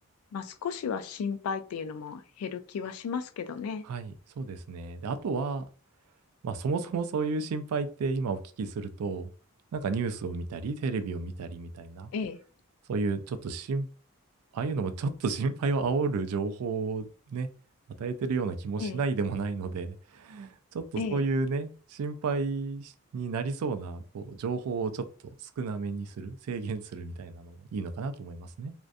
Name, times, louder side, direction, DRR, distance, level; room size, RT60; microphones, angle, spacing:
voice 1, 0.3-3.8 12.1-12.4 18.8-19.0 21.0-21.2, left 6 dB, 80° left, 0.3 m, -34 dB
voice 2, 3.8-5.6 6.4-9.3 9.7-12.1 12.9-13.9 14.5-17.5 18.0-25.1 25.4-28.7, right 4 dB, 90° right, 0.3 m, -32 dB
2.4 x 2.1 x 2.5 m
head